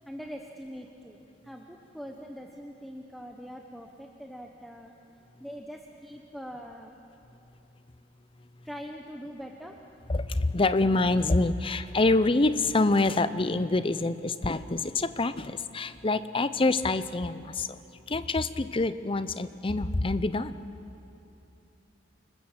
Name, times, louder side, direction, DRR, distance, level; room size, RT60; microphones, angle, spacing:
voice 1, 0.1-1.2 1.4-4.9 5.4-6.9 8.6-9.8, equal, ahead, 2 dB, 1.0 m, -42 dB
voice 2, 10.1-17.8 18.1-20.6, left 2 dB, 30° left, 13 dB, 0.7 m, -26 dB
28.5 x 20.0 x 7.5 m, 3.0 s
head